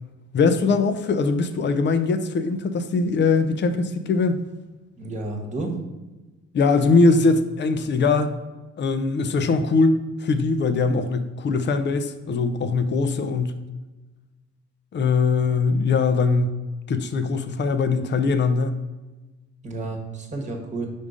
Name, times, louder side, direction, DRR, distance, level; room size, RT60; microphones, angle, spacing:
voice 1, 0.3-4.4 6.5-8.3 8.8-10.0 10.2-13.6 14.9-16.5 16.9-18.7, left 4 dB, 40° left, 9 dB, 0.5 m, -21 dB
voice 2, 4.9-5.7 19.6-20.9, right 2 dB, 25° right, 2 dB, 1.2 m, -31 dB
5.2 x 3.6 x 5.0 m, 1.2 s
cardioid pair, 90°, 30 cm